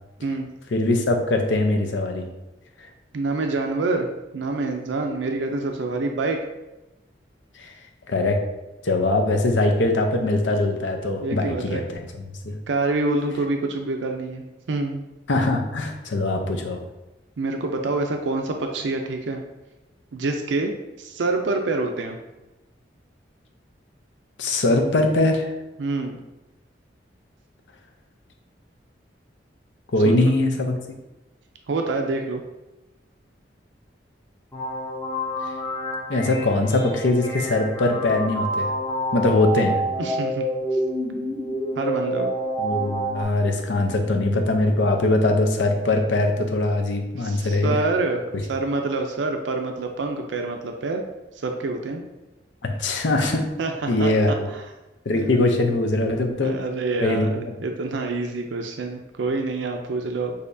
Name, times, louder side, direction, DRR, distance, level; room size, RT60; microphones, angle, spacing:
voice 1, 0.7-2.3 7.6-7.7 8.1-8.4 8.8-12.5 15.3-16.8 24.4-25.5 29.9-30.7 36.1-38.7 39.1-39.8 42.6-47.8 52.6-53.5 53.9-54.5 55.1-56.6 57.0-57.5, left 2 dB, 85° left, 3 dB, 0.7 m, -22 dB
voice 2, 3.1-4.1 4.3-6.5 11.2-11.8 12.7-15.0 17.4-19.4 20.1-20.7 21.0-22.2 25.8-26.2 30.0-30.1 31.7-32.4 40.0-40.5 41.8-42.3 47.2-48.2 48.5-51.0 51.4-52.0 53.6-54.1 54.5-54.6 55.1-55.7 56.4-57.3 57.6-60.3, right 3 dB, 80° right, 4 dB, 0.5 m, -26 dB
sound 1, 34.5-43.2, right 1 dB, 20° left, 0.7 m, -28 dB
6.5 x 2.7 x 2.6 m, 1.0 s
head